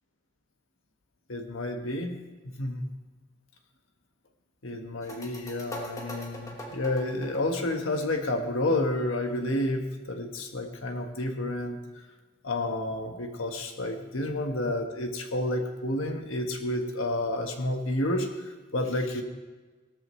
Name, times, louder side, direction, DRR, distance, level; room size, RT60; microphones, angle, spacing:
voice 1, 1.3-2.1 2.6-2.8 4.6-11.8 12.4-18.3 18.7-19.2, left 1 dB, 90° left, 4 dB, 1.4 m, -30 dB
sound 1, 5.0-8.5, equal, 15° left, 1.4 m, -42 dB
17.5 x 13.5 x 3.2 m, 1.3 s
head